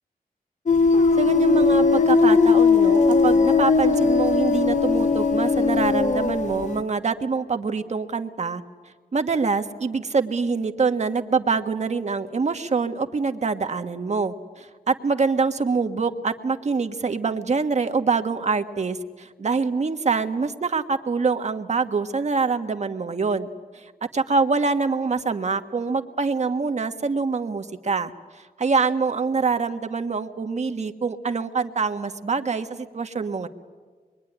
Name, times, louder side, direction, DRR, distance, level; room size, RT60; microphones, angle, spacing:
sound 1, 0.7-6.8, left 4 dB, 50° left, 1.2 m, -19 dB
voice 1, 1.2-8.6 9.1-23.5 23.7-33.5, right 4 dB, 50° right, 6 dB, 1.4 m, -25 dB
25.5 x 23.0 x 10.0 m, 1.5 s
wide cardioid pair, 145°, 15 cm